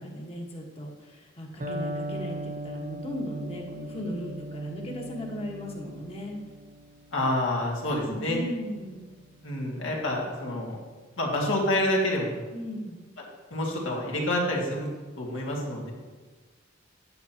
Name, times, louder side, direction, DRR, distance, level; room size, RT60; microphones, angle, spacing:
voice 1, 0.0-6.4 8.1-9.1 12.5-13.0, equal, 30° left, 0 dB, 1.4 m, -37 dB
Electric guitar, 1.6-9.4, right 1 dB, 45° right, 1.2 m, -39 dB
voice 2, 7.1-8.4 9.4-10.8 11.2-12.4 13.5-14.9 15.2-15.9, left 1 dB, 70° left, -2 dB, 2.1 m, -28 dB
9.2 x 9.2 x 2.9 m, 1.4 s
head